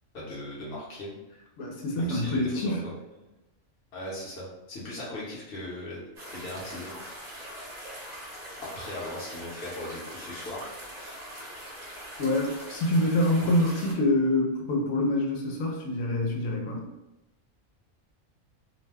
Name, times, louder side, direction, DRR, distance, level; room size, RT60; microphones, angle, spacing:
voice 1, 0.1-1.2 1.9-3.2 3.9-6.0 6.3-6.9 7.2-7.3 8.6-10.6, left 1 dB, 55° left, -6 dB, 1.0 m, -39 dB
voice 2, 1.6-2.9 12.2-16.9, left 1 dB, 85° left, 0 dB, 1.1 m, -26 dB
Nolde Forest - Medium Stream, 6.2-13.9, equal, 35° right, 0.8 m, -42 dB
2.6 x 2.2 x 3.3 m, 0.99 s
omnidirectional pair, 1.4 m